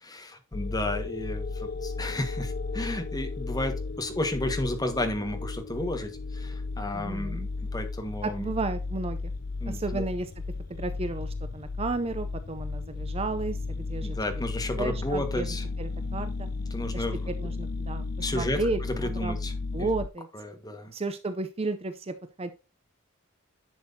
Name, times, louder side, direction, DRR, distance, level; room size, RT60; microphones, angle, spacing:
voice 1, 0.0-8.5 9.6-10.0 14.0-15.6 16.7-17.3 18.2-19.5 20.3-20.9, left 1 dB, 20° left, 5 dB, 1.5 m, -32 dB
sound 1, 0.5-20.1, left 3 dB, 45° left, 0.4 m, -34 dB
voice 2, 6.9-7.5 8.2-9.3 9.7-10.3 10.7-14.2 14.8-16.5 16.9-19.4 19.7-20.3 20.9-22.5, right 3 dB, 30° right, 10 dB, 0.5 m, -33 dB
10.5 x 6.3 x 2.7 m, 0.30 s
head